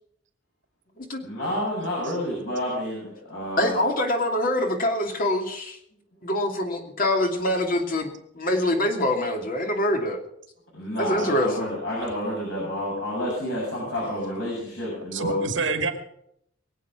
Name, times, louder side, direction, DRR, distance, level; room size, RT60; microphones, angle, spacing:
voice 1, 1.2-3.8 10.7-15.4, equal, 75° left, -5 dB, 7.4 m, -29 dB
voice 2, 3.6-5.8 6.2-10.2 11.0-11.7, left 1 dB, 50° left, 3 dB, 2.7 m, -25 dB
voice 3, 12.6-13.2 13.5-14.0 14.5-16.0, right 4 dB, 75° right, 6 dB, 2.4 m, -32 dB
22.5 x 8.3 x 6.1 m, 0.73 s
head